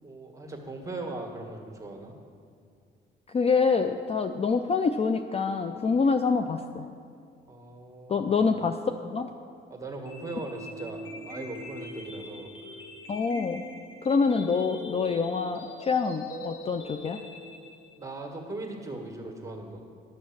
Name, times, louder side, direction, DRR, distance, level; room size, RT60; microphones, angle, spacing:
voice 1, 0.0-2.1 7.5-8.4 9.7-11.0 11.3-12.5 18.0-19.8, right 2 dB, 15° right, 2 dB, 1.7 m, -39 dB
voice 2, 3.3-6.9 8.1-9.3 13.1-13.6 14.0-17.2, left 5 dB, 30° left, 7 dB, 0.4 m, -26 dB
sound 1, 10.1-18.1, left 1 dB, 70° left, 1.7 m, -42 dB
11.5 x 6.3 x 6.1 m, 2.3 s
cardioid pair, 90°, 20 cm